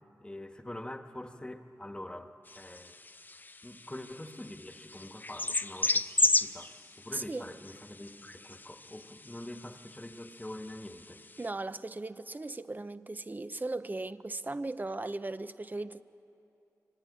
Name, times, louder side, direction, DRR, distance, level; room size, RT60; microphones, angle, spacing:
voice 1, 0.2-3.0 3.6-6.7 7.0-11.2, left 1 dB, 15° left, 1.6 m, -45 dB
sound 1, 2.5-11.5, left 2 dB, 30° left, 0.6 m, -35 dB
voice 2, 7.1-7.5 11.4-16.0, right 2 dB, 30° right, 0.8 m, -37 dB
25.5 x 23.5 x 9.8 m
wide cardioid pair, 70°, 6 cm